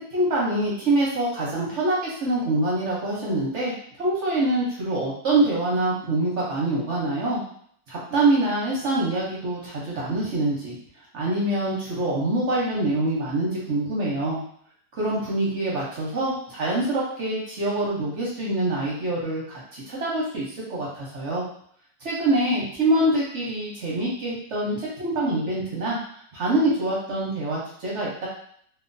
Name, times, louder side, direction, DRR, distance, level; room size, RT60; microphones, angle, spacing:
voice 1, 0.1-7.4 7.9-10.7 11.1-14.4 15.0-21.4 22.0-26.0 26.3-28.3, right 2 dB, 60° right, -5 dB, 0.7 m, -25 dB
3.1 x 2.0 x 2.5 m, 0.64 s
omnidirectional pair, 2.0 m